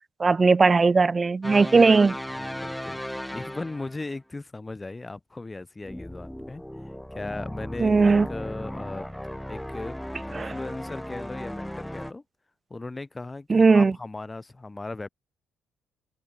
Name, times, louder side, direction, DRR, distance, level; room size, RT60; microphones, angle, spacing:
voice 1, 0.2-2.2 7.8-8.3 10.3-10.5 13.5-13.9, right 4 dB, 30° right, 0.3 m, -18 dB
sound 1, 1.4-4.1 5.8-12.1, equal, 5° left, 1.7 m, -36 dB
voice 2, 2.3-6.6 7.1-9.1 9.5-12.2 12.7-15.1, left 2 dB, 20° left, 1.9 m, -38 dB
hypercardioid pair, 60°, 0 cm